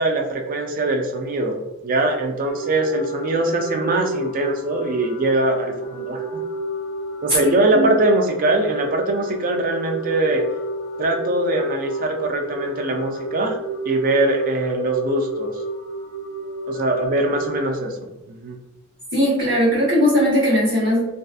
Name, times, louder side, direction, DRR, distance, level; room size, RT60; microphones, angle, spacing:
voice 1, 0.0-6.2 7.2-10.4 11.0-13.6 13.8-15.5 16.7-18.6, right 2 dB, 40° right, 3 dB, 0.4 m, -22 dB
sound 1, 2.5-17.6, right 1 dB, 75° left, 0.4 m, -31 dB
voice 2, 7.4-7.9 19.1-21.0, equal, 60° right, -12 dB, 1.0 m, -19 dB
2.4 x 2.3 x 2.3 m, 0.95 s
head